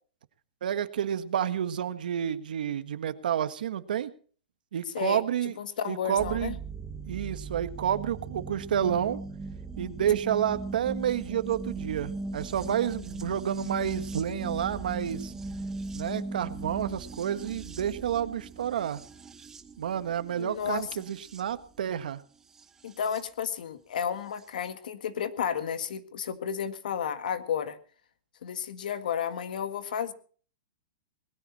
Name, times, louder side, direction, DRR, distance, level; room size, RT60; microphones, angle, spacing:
voice 1, 0.6-4.1 4.7-5.5 5.9-6.6 7.0-9.2 9.8-15.3 15.9-19.0 19.8-22.2, right 9 dB, 75° right, 11 dB, 1.5 m, -30 dB
voice 2, 4.9-6.5 20.4-20.9 22.8-27.8 28.4-30.1, left 8 dB, 70° left, 11 dB, 1.8 m, -32 dB
sound 1, 6.2-23.2 24.4-24.5, right 3 dB, 10° right, 0.9 m, -39 dB
19.5 x 14.5 x 4.3 m, 0.43 s
supercardioid pair, 170°, 5 cm